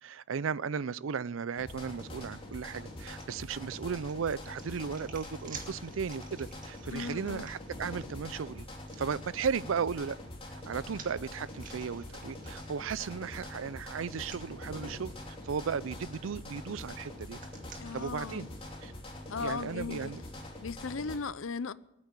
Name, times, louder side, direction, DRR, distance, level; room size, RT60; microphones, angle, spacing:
voice 1, 0.0-8.7 9.0-10.2 10.5-17.4 17.9-18.5 18.8-18.9 19.4-20.2, right 6 dB, 80° right, 0.5 m, -35 dB
sound 1, 1.6-21.2, left 1 dB, 30° left, 3.2 m, -44 dB
sound 2, 2.5-8.1 8.9-9.0 10.2-13.2 13.6-13.7 14.2-14.4 15.4-15.7 16.1-18.3, right 6 dB, 45° right, 1.8 m, -52 dB
voice 2, 6.9-7.5 17.8-18.5 19.3-20.1 20.6-21.7, left 4 dB, 90° left, 0.6 m, -37 dB
19.5 x 8.7 x 8.2 m
head